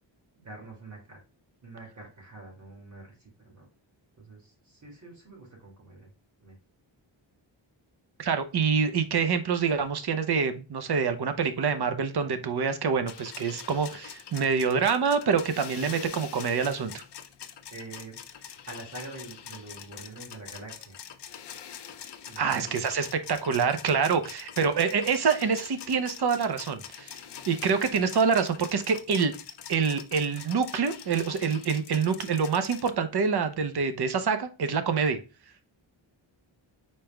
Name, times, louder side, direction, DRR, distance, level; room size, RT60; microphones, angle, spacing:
voice 1, 0.3-1.2 1.6-3.7 4.2-6.1 6.4-6.6 17.7-21.0 22.2-22.8, right 2 dB, 40° right, -2 dB, 2.2 m, -45 dB
voice 2, 8.2-17.0 22.4-27.1 27.5-29.3 29.7-35.2, right 6 dB, 55° right, 9 dB, 0.8 m, -26 dB
sound 1, 13.1-32.9, left 8 dB, 60° left, 0.6 m, -44 dB
5.3 x 4.5 x 2.2 m, 0.32 s
wide cardioid pair, 135°, 46 cm